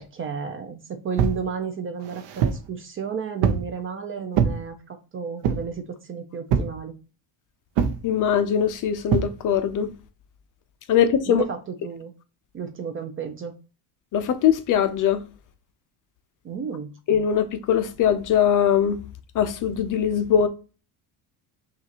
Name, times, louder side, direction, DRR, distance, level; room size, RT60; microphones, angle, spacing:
voice 1, 0.0-6.9 11.3-12.1 12.5-13.5 16.4-16.9, right 6 dB, 30° right, 0.4 m, -32 dB
sound 1, 1.2-1.4 2.0-2.7 3.4-3.7 4.3-4.6 5.4-5.8 6.5-6.8 7.8-8.0 9.1-9.3, right 7 dB, 80° right, 0.8 m, -23 dB
voice 2, 8.0-9.9 10.9-11.4 14.1-15.2 17.1-19.0 19.3-20.5, left 9 dB, 40° left, 0.5 m, -21 dB
5.6 x 2.5 x 2.8 m
cardioid pair, 130°, 47 cm